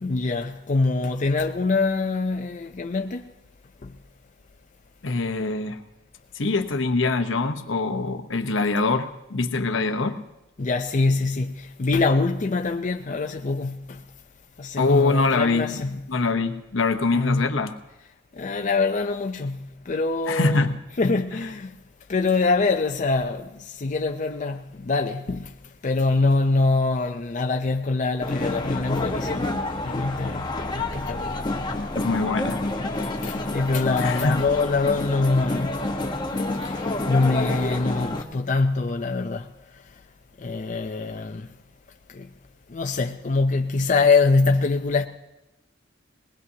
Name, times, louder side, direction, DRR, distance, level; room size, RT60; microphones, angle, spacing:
voice 1, 0.0-3.2 3.8-3.9 10.6-14.0 14.6-16.0 17.1-17.5 18.4-20.6 21.0-21.7 22.1-25.5 25.8-31.4 33.2-35.8 36.6-39.5 40.4-41.5 42.1-42.3 42.7-45.1, left 3 dB, 40° left, 0.5 m, -24 dB
voice 2, 5.0-5.8 6.3-10.2 14.8-17.7 20.3-20.8 31.9-32.7 34.0-34.4, left 3 dB, 75° left, 0.9 m, -24 dB
sound 1, 28.2-38.2, left 2 dB, 25° left, 1.1 m, -28 dB
21.0 x 19.0 x 2.8 m
head